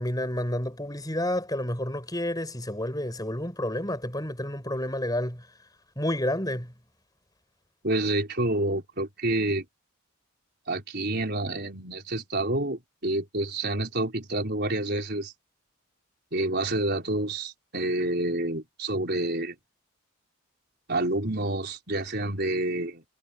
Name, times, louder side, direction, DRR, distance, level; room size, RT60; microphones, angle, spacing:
voice 1, 0.0-5.5 6.0-6.7, left 1 dB, 15° left, 7.9 m, -30 dB
voice 2, 7.8-9.6 10.7-15.3 16.3-19.6 20.9-23.0, right 2 dB, 45° right, 4.6 m, -28 dB
head